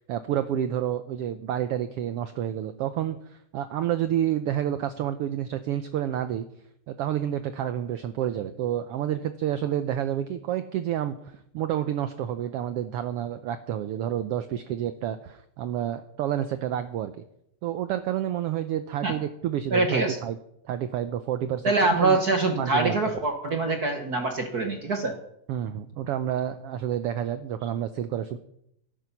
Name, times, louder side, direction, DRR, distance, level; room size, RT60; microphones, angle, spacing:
voice 1, 0.0-6.4 6.9-17.1 17.6-20.4 20.6-22.2 22.6-23.0 25.5-28.4, right 11 dB, 75° right, 11 dB, 1.4 m, -29 dB
voice 2, 19.7-20.2 21.6-25.1, right 3 dB, 50° right, 5 dB, 1.2 m, -24 dB
14.0 x 11.0 x 5.8 m, 0.76 s
omnidirectional pair, 3.4 m